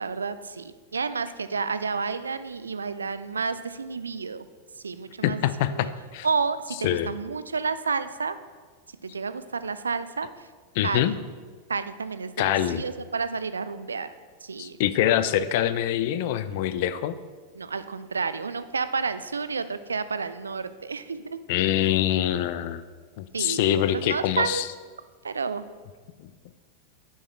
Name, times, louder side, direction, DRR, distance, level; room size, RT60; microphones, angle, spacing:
voice 1, 0.0-4.4 4.8-5.4 5.7-5.9 6.2-8.3 9.0-10.3 10.8-11.2 11.7-14.1 14.4-14.8 17.5-21.4 23.3-24.7 25.2-25.7, right 5 dB, 80° right, 12 dB, 0.3 m, -30 dB
voice 2, 5.2-6.3 6.8-7.1 10.8-11.1 12.4-12.8 14.6-17.1 21.5-22.8 23.2-24.7 26.2-26.3, left 11 dB, 55° left, 13 dB, 0.3 m, -24 dB
6.8 x 4.7 x 4.2 m, 1.5 s
figure-of-eight pair, 90°, 0 cm